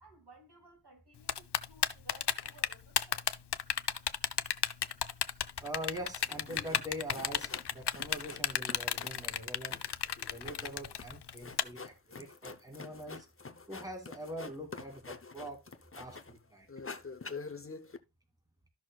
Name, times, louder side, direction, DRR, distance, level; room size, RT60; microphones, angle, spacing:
voice 1, 0.0-3.3, right 2 dB, 80° right, 2.4 m, -59 dB
Typing, 1.3-11.6, left 9 dB, 90° left, 0.5 m, -32 dB
voice 2, 5.6-9.8 10.2-13.3 13.7-15.6 16.0-16.7, equal, 10° right, 2.5 m, -43 dB
sound 1, 6.2-6.8 7.1-8.4 8.7-16.4 16.7-18.0, left 4 dB, 35° left, 0.7 m, -46 dB
13.0 x 6.1 x 2.3 m
wide cardioid pair, 45°, 40 cm